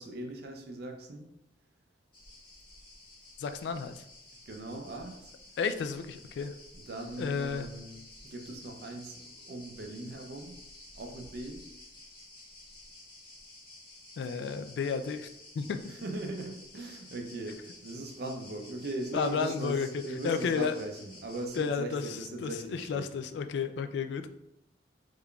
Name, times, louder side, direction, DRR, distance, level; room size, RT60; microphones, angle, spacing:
voice 1, 0.0-1.3 4.5-5.3 6.9-10.5 10.9-11.6 15.9-23.1, right 2 dB, 60° right, 3 dB, 0.5 m, -40 dB
sound 1, 2.1-21.7, left 2 dB, 30° left, 1.0 m, -52 dB
voice 2, 3.4-4.0 5.6-6.5 7.2-7.7 14.2-15.3 15.6-15.8 19.1-19.9 20.2-20.7 21.6-22.0 22.4-24.3, left 5 dB, 70° left, 10 dB, 0.3 m, -32 dB
3.7 x 3.3 x 2.3 m, 0.81 s
head